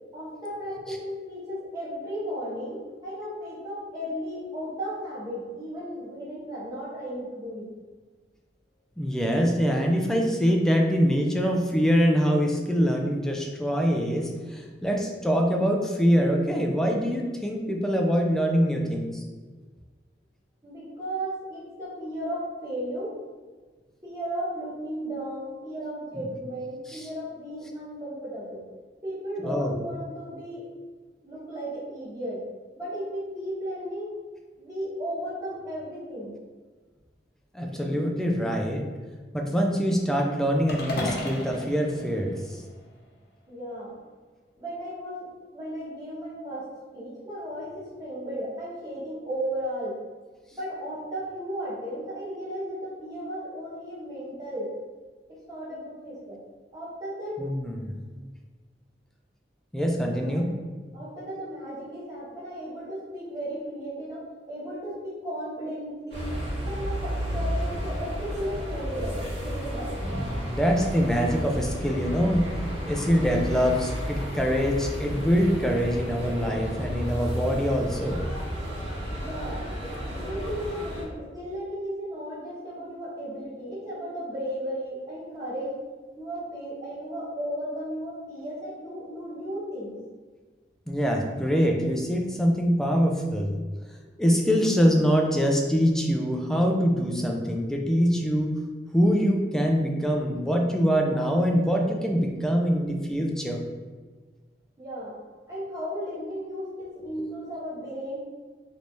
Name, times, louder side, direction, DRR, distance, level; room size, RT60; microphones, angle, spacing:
voice 1, 0.1-7.7 20.6-23.2 24.0-28.6 29.0-30.7 31.2-32.4 32.8-34.2 34.6-36.3 43.5-44.0 44.6-50.0 50.5-54.7 55.3-56.4 56.7-57.4 60.1-60.4 60.9-70.0 79.1-79.6 80.2-85.7 86.1-90.0 104.8-105.2 105.5-108.2, equal, 20° right, -9 dB, 1.3 m, -35 dB
voice 2, 9.0-19.2 26.9-27.1 29.4-29.7 37.5-38.9 39.3-42.6 57.4-57.9 59.7-60.5 70.0-72.5 72.9-78.2 90.9-93.6 94.2-98.5 98.9-103.6 107.2-107.3, equal, 5° left, 1 dB, 0.4 m, -24 dB
sound 1, 40.7-43.0, left 1 dB, 60° left, 0.6 m, -34 dB
sound 2, 66.1-81.0, equal, 90° right, 1.5 m, -32 dB
3.2 x 3.1 x 2.6 m, 1.4 s
head